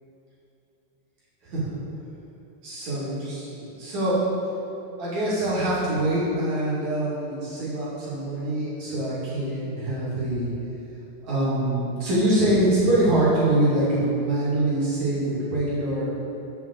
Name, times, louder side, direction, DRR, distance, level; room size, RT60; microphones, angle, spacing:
voice 1, 1.4-1.8 2.6-4.2 5.0-10.5 11.2-16.1, right 1 dB, 50° right, -10 dB, 3.5 m, -24 dB
7.6 x 5.6 x 7.7 m, 2.8 s
omnidirectional pair, 4.8 m